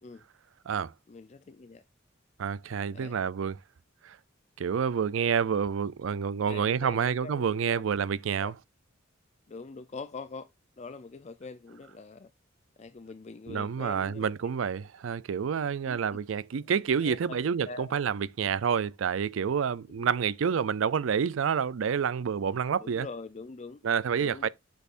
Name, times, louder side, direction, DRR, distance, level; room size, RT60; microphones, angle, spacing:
voice 1, 1.1-1.8 2.9-3.2 6.1-7.8 8.4-8.5 9.5-10.5 10.8-12.3 12.8-14.3 15.9-16.0 16.7-17.9 20.0-20.1 22.8-23.8 24.1-24.5, left 4 dB, 35° left, 0.4 m, -43 dB
voice 2, 2.4-3.6 4.0-4.2 4.6-8.5 13.5-23.1 23.8-24.5, right 7 dB, 85° right, 0.4 m, -28 dB
8.1 x 6.4 x 2.5 m
head